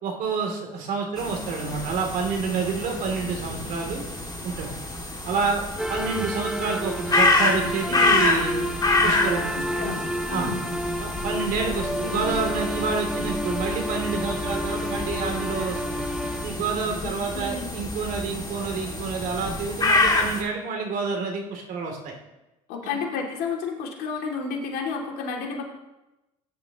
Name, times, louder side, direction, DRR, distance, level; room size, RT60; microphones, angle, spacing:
voice 1, 0.0-4.0 4.4-4.7 5.3-5.6 5.9-8.7 9.0-9.5 10.3-10.5 11.0-16.0 16.4-22.1 22.8-23.0, right 4 dB, 55° right, 2 dB, 3.0 m, -28 dB
sound 1, 1.2-20.4, left 2 dB, 20° left, 2.4 m, -27 dB
sound 2, 5.8-17.6, equal, 5° right, 0.6 m, -31 dB
voice 2, 9.5-10.6 11.7-12.3 17.0-17.7 22.7-25.6, left 5 dB, 65° left, 1 dB, 2.7 m, -32 dB
16.5 x 10.5 x 3.0 m, 0.99 s
hypercardioid pair, 70°, 17 cm